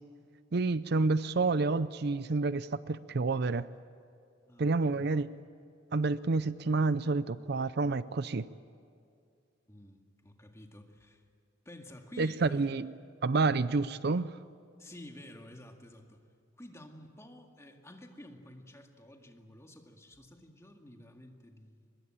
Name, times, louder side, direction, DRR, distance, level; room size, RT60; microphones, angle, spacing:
voice 1, 0.5-3.7 4.6-5.3 5.9-8.5 12.2-12.9 13.2-14.4, right 3 dB, 60° right, 16 dB, 0.6 m, -29 dB
voice 2, 4.5-5.1 9.7-11.2 11.7-12.7 14.8-16.2 16.6-21.9, left 1 dB, 15° left, 3 dB, 2.0 m, -51 dB
24.0 x 21.5 x 9.0 m, 2.3 s
head